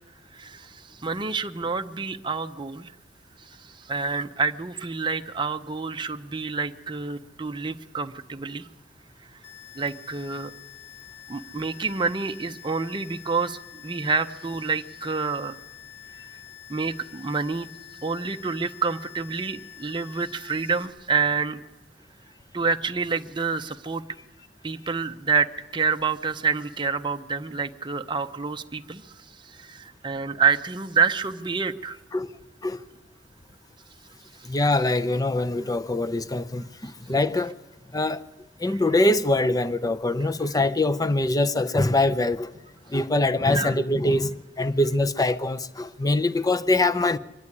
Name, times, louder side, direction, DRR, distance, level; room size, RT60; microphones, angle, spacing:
voice 1, 0.3-2.9 3.4-8.7 9.7-10.5 11.3-15.6 16.7-17.7 18.0-21.6 22.5-24.0 24.6-32.0 38.6-38.8 43.5-43.8, right 5 dB, 25° right, 0.6 m, -28 dB
sound 1, 9.4-20.9, left 12 dB, 70° left, 2.2 m, -47 dB
voice 2, 34.4-37.5 37.9-38.2 38.6-42.5 42.9-47.2, left 2 dB, 20° left, 0.6 m, -23 dB
23.5 x 11.5 x 9.7 m
head